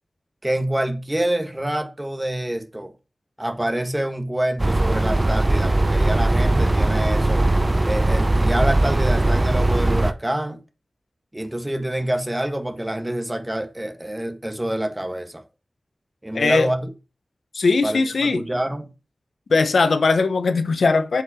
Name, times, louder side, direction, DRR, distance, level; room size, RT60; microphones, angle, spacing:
voice 1, 0.4-2.9 3.4-7.5 7.8-10.6 11.3-15.4 16.2-16.9 17.8-18.9, right 1 dB, 15° right, 1.7 m, -26 dB
sound 1, 4.6-10.1, right 2 dB, 30° right, 0.8 m, -19 dB
voice 2, 16.3-16.7 17.5-18.5 19.5-21.2, left 4 dB, 90° left, 1.0 m, -19 dB
7.7 x 5.3 x 6.4 m
wide cardioid pair, 55°, 0 cm